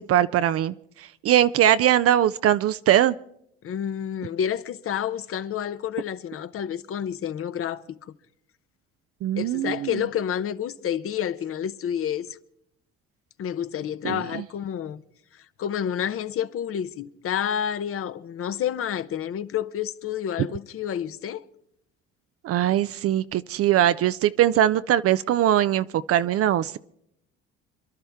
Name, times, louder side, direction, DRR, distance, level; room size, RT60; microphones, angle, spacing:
voice 1, 0.0-3.1 9.2-9.9 14.0-14.2 22.4-26.8, right 12 dB, 55° right, 0.5 m, -21 dB
voice 2, 3.6-8.0 9.4-12.4 13.4-15.0 15.3-21.4, left 9 dB, 50° left, 0.9 m, -29 dB
27.0 x 11.5 x 3.5 m
cardioid pair, 95°, 29 cm